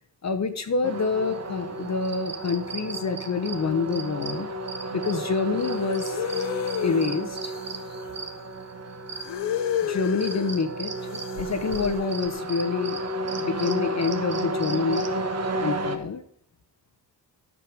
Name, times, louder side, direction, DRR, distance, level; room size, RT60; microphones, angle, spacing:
voice 1, 0.2-4.5 4.9-6.2 6.8-7.5 9.8-13.0 13.4-15.0 15.6-16.2, left 4 dB, 40° left, 7 dB, 1.0 m, -27 dB
sound 1, 0.8-16.0, right 2 dB, 40° right, 1.2 m, -32 dB
sound 2, 5.6-8.3 9.1-10.6 11.0-12.3, left 10 dB, 85° left, 0.7 m, -31 dB
9.6 x 6.7 x 4.7 m, 0.67 s
cardioid pair, 70°, 42 cm